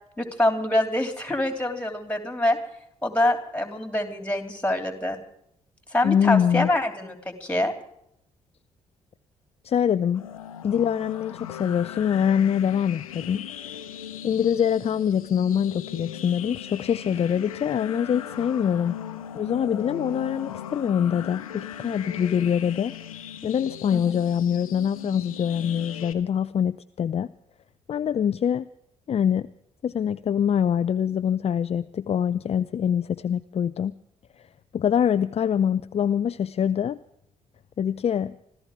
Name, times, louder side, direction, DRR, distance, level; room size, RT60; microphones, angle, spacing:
voice 1, 0.2-2.6 3.0-5.2 5.9-7.7 23.9-24.2, left 1 dB, 5° left, 6 dB, 3.1 m, -25 dB
voice 2, 6.0-6.7 9.6-10.2 10.6-13.4 14.2-19.0 19.3-22.9 23.4-27.3 27.9-28.7 29.1-29.5 29.8-33.9 34.7-37.0 37.8-38.3, left 8 dB, 35° left, 14 dB, 0.5 m, -24 dB
sound 1, 10.1-26.1, left 10 dB, 85° left, 0.9 m, -38 dB
26.0 x 13.5 x 3.7 m, 0.74 s
figure-of-eight pair, 40°, 18 cm